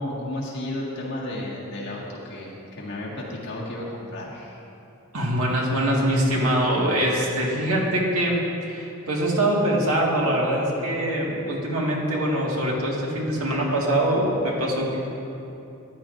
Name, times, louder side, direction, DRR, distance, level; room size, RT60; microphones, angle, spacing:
voice 1, 0.0-4.6, left 1 dB, 55° left, -5 dB, 1.8 m, -33 dB
voice 2, 5.1-8.4 8.7-15.0, right 1 dB, 85° right, -3 dB, 1.8 m, -23 dB
13.5 x 10.0 x 2.6 m, 2.8 s
head